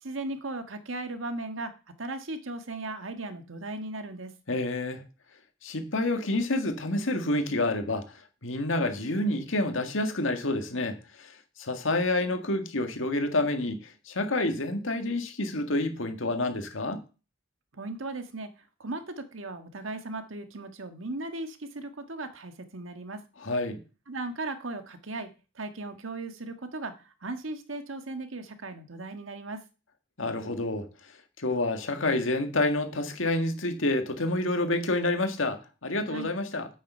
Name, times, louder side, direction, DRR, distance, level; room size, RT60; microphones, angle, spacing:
voice 1, 0.0-1.7 2.0-4.3 17.7-23.2 24.1-25.3 25.5-29.6 36.1-36.3, right 2 dB, 90° right, 1.5 m, -37 dB
voice 2, 4.5-5.0 5.6-8.1 8.4-17.0 23.4-23.8 30.2-30.9 31.4-36.7, left 2 dB, 85° left, 1.9 m, -28 dB
8.8 x 8.7 x 5.6 m
head